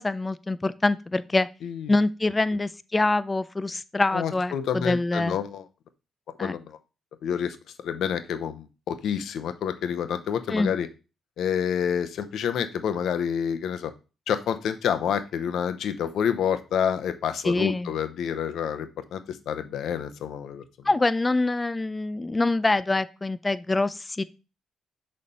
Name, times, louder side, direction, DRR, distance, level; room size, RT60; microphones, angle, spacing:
voice 1, 0.0-1.5 1.9-5.4 6.4-6.6 10.5-10.7 17.4-18.0 20.9-24.2, left 2 dB, 20° left, 16 dB, 0.4 m, -25 dB
voice 2, 1.6-1.9 4.1-5.6 6.4-6.8 7.2-7.6 7.8-10.9 11.4-13.9 14.3-20.6, left 8 dB, 70° left, 10 dB, 0.8 m, -28 dB
6.8 x 3.3 x 5.5 m, 0.31 s
cardioid pair, 90°, 0 cm